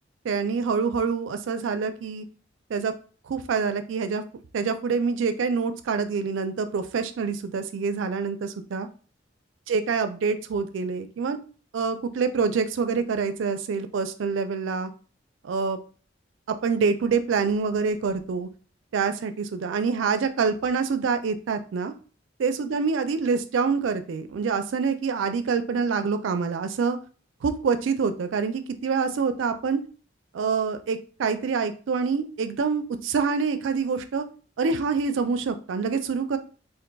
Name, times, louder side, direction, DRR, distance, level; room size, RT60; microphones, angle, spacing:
voice 1, 0.2-2.2 2.7-2.9 3.3-4.2 4.5-8.9 9.7-11.4 11.7-14.9 15.4-15.8 16.6-18.5 18.9-21.9 22.4-27.0 27.4-29.8 30.3-34.2 34.6-36.4, right 5 dB, 85° right, 9 dB, 0.4 m, -26 dB
2.5 x 2.2 x 3.8 m, 0.38 s
head